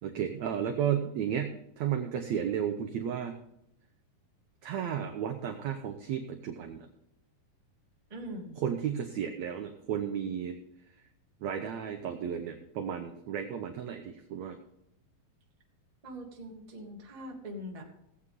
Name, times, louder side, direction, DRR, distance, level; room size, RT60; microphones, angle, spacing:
voice 1, 0.0-3.3 4.6-6.9 8.6-10.6 11.4-14.6, right 8 dB, 80° right, 5 dB, 1.6 m, -33 dB
voice 2, 8.1-8.6 16.0-17.8, equal, 20° right, -1 dB, 1.0 m, -42 dB
17.0 x 8.3 x 3.8 m, 0.80 s
omnidirectional pair, 4.2 m